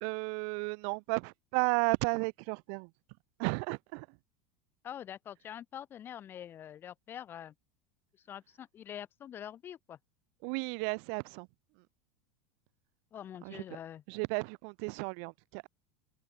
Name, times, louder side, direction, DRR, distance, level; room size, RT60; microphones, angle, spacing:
voice 1, 0.0-2.9 3.4-4.1 10.4-11.5 13.4-13.8 14.1-15.7, right 40 dB or more, 50° right, 0.4 m, -33 dB
voice 2, 4.8-7.5 8.3-10.0 13.1-14.0, left 10 dB, 25° left, 1.0 m, -45 dB
supercardioid pair, 155°, 9 cm